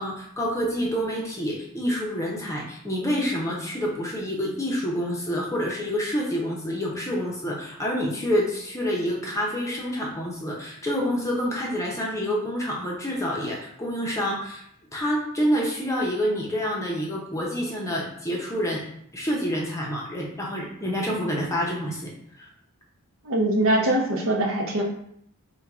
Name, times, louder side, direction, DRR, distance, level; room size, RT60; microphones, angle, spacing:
voice 1, 0.0-14.6 14.9-18.8 19.1-22.1 22.4-22.5, equal, 15° left, -3 dB, 0.7 m, -27 dB
voice 2, 23.2-24.8, right 1 dB, 60° right, 1 dB, 0.7 m, -22 dB
4.4 x 2.2 x 3.5 m, 0.70 s
head